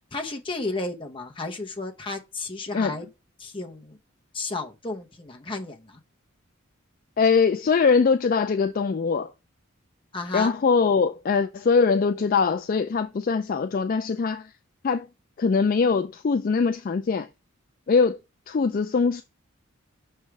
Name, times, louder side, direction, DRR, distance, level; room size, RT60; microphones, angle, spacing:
voice 1, 0.1-3.1 3.4-4.0 4.3-6.0 10.1-10.5, left 3 dB, 25° left, 0.9 m, -33 dB
voice 2, 7.2-9.3 10.3-14.4 14.8-15.1 15.4-17.3 17.9-18.2 18.5-19.2, left 5 dB, 40° left, 0.3 m, -22 dB
6.3 x 3.3 x 4.7 m
head